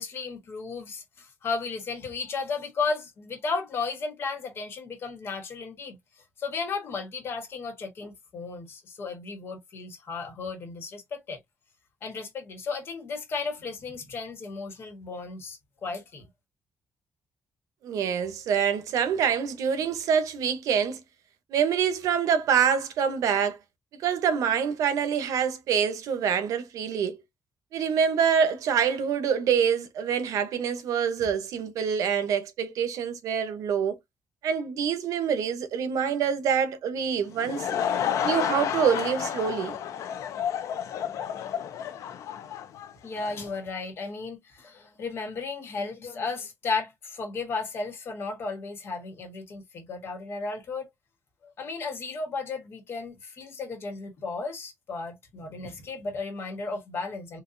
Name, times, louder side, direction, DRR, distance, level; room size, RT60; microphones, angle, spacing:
voice 1, 0.0-6.0 6.4-11.4 12.0-16.3 43.0-50.9 51.4-57.4, left 4 dB, 45° left, 1.2 m, -34 dB
voice 2, 17.8-21.0 21.5-23.6 24.0-27.2 27.7-34.0 34.4-37.7 38.2-39.8, right 7 dB, 85° right, 0.8 m, -26 dB
Laughter / Crowd, 37.2-43.5, left 9 dB, 75° left, 0.5 m, -31 dB
4.1 x 2.4 x 2.6 m
cardioid pair, 170°, 6 cm